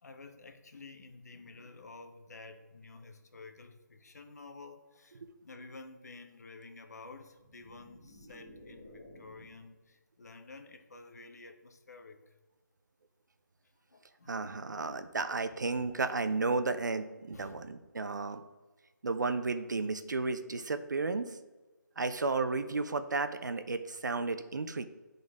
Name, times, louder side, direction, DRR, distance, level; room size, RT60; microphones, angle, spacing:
voice 1, 0.0-12.2 13.9-14.4 14.8-15.1 17.3-17.6, left 3 dB, 55° left, 6 dB, 0.9 m, -51 dB
sound 1, 7.2-9.7, left 1 dB, 5° left, 1.5 m, -54 dB
voice 2, 14.3-18.4 19.0-21.4 22.0-24.9, right 3 dB, 70° right, 10 dB, 0.7 m, -33 dB
10.5 x 3.9 x 3.6 m, 1.3 s
hypercardioid pair, 170°, 10 cm